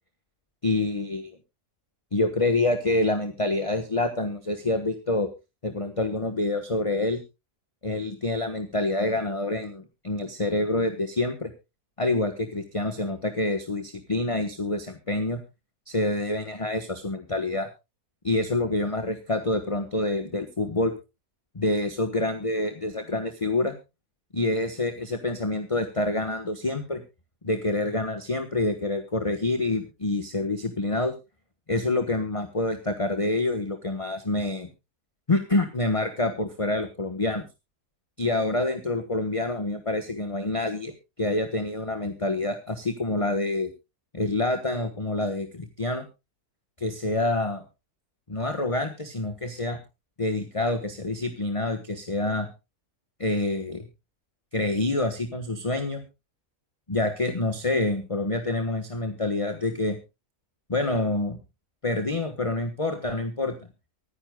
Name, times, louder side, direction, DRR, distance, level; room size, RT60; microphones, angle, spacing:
voice 1, 0.6-1.4 2.1-5.3 5.6-7.2 7.8-11.5 12.0-15.4 15.9-17.7 18.2-20.9 21.5-23.7 24.3-27.0 27.4-31.1 31.7-34.7 35.3-37.4 38.2-40.9 41.2-43.7 44.1-46.0 46.8-47.6 48.3-49.8 50.2-52.5 53.2-53.9 54.5-56.0 56.9-60.0 60.7-61.4 61.8-63.6, left 2 dB, 20° left, 7 dB, 1.3 m, -27 dB
24.0 x 10.0 x 2.3 m, 0.26 s
omnidirectional pair, 1.6 m